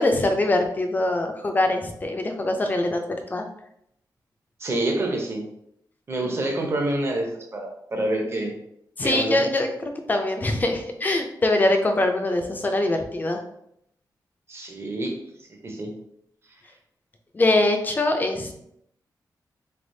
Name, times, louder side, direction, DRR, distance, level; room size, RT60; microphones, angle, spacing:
voice 1, 0.0-3.0 3.3-3.5 6.2-6.4 9.0-13.4 17.3-18.6, left 2 dB, 25° left, 5 dB, 0.4 m, -23 dB
voice 2, 4.6-5.5 6.1-8.5 9.0-9.4 14.5-15.2 15.6-15.9, right 1 dB, 35° right, 2 dB, 0.7 m, -27 dB
3.9 x 3.3 x 2.6 m, 0.74 s
wide cardioid pair, 170°, 7 cm